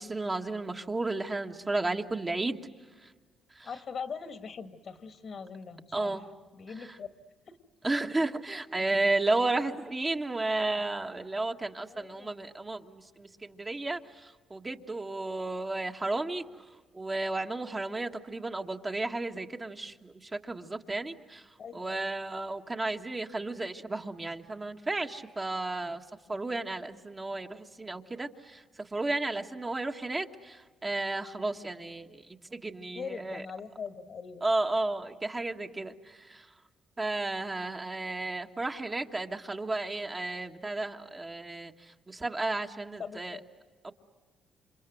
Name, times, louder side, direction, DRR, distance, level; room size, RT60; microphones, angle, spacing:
voice 1, 0.0-2.6 3.0-3.1 3.5-3.7 5.9-6.2 6.8-6.9 7.8-16.4 16.9-21.5 21.7-26.0 26.3-33.4 34.4-36.5 37.0-43.4 43.8-43.9, right 2 dB, 25° right, 4 dB, 1.6 m, -33 dB
voice 2, 3.6-6.2 6.5-7.1 7.5-7.6 11.9-12.3 21.6-22.1 32.9-34.5 43.0-43.4, left 6 dB, 55° left, 10 dB, 2.0 m, -41 dB
29.0 x 26.5 x 7.9 m, 1.3 s
cardioid pair, 90°, 0 cm